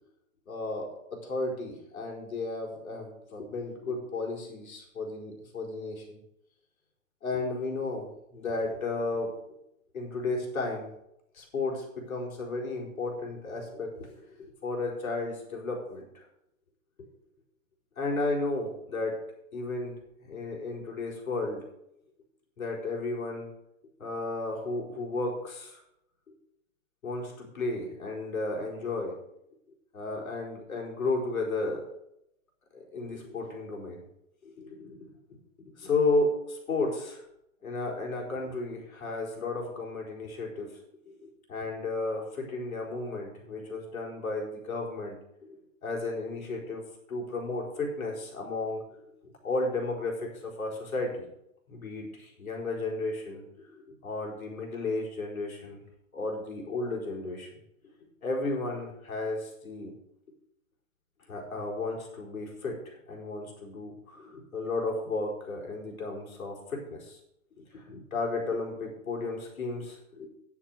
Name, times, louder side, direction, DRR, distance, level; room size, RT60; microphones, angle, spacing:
voice 1, 0.5-6.2 7.2-9.4 9.9-10.9 11.3-16.2 18.0-19.2 19.5-19.9 20.2-21.6 22.6-23.5 24.0-25.8 27.0-29.2 29.9-31.9 32.7-34.0 34.4-35.0 35.8-37.2 37.6-40.7 41.1-46.8 47.1-48.8 49.2-51.2 51.7-53.7 54.0-55.8 56.1-57.5 58.2-59.9 61.3-67.2 67.6-70.3, left 2 dB, 85° left, 0 dB, 4.5 m, -33 dB
10.0 x 7.5 x 6.6 m, 0.80 s
hypercardioid pair, 175°, 41 cm